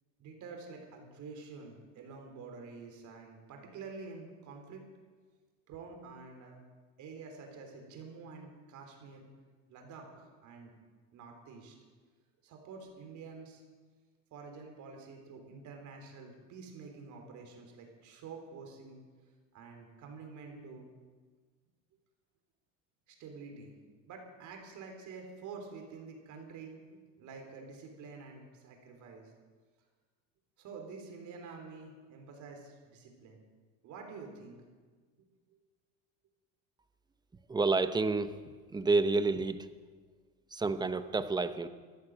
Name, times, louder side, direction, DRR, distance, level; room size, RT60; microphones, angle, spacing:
voice 1, 0.2-4.8 5.7-6.6 7.0-9.3 9.7-10.7 11.1-11.8 12.4-13.6 14.3-19.0 19.5-20.9 23.1-23.7 24.0-29.3 30.6-33.4 33.8-34.6, right 4 dB, 50° right, 3 dB, 3.7 m, -48 dB
voice 2, 37.5-38.3 38.7-39.7 40.5-41.7, right 3 dB, 10° right, 11 dB, 0.7 m, -29 dB
13.5 x 11.0 x 7.7 m, 1.4 s
supercardioid pair, 125°, 37 cm